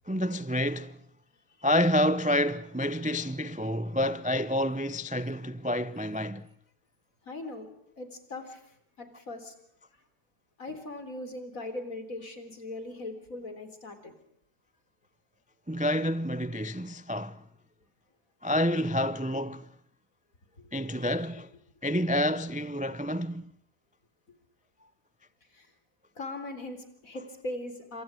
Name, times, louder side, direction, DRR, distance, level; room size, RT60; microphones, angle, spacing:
voice 1, 0.1-1.0 1.6-6.5 15.7-17.4 18.4-19.7 20.7-21.5 21.8-23.5, left 1 dB, 10° right, 0.4 m, -28 dB
voice 2, 7.2-7.7 8.0-9.5 10.6-14.1 25.5-25.7 26.2-28.0, left 2 dB, 60° left, 4.2 m, -40 dB
28.0 x 27.0 x 5.1 m
omnidirectional pair, 1.7 m